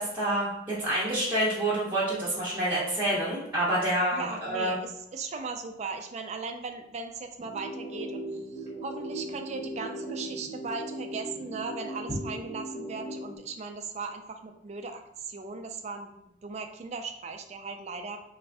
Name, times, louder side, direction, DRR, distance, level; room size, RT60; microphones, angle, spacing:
voice 1, 0.0-4.8, right 1 dB, 10° right, -10 dB, 0.8 m, -28 dB
voice 2, 4.1-18.2, right 4 dB, 35° right, 5 dB, 0.3 m, -38 dB
sound 1, 7.4-13.4, right 1 dB, 50° left, 1.1 m, -38 dB
3.1 x 2.5 x 3.4 m, 0.84 s
head